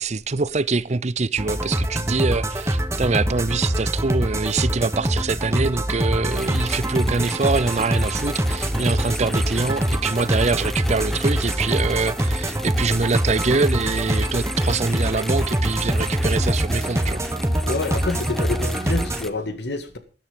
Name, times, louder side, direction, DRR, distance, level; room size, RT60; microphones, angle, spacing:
voice 1, 0.0-17.2, right 4 dB, 40° right, 0.6 m, -24 dB
sound 1, 1.4-19.2, right 1 dB, 15° right, 1.3 m, -24 dB
sound 2, 6.3-19.3, equal, ahead, 0.8 m, -35 dB
voice 2, 17.7-20.0, left 3 dB, 75° left, 2.0 m, -27 dB
13.0 x 11.5 x 5.2 m
head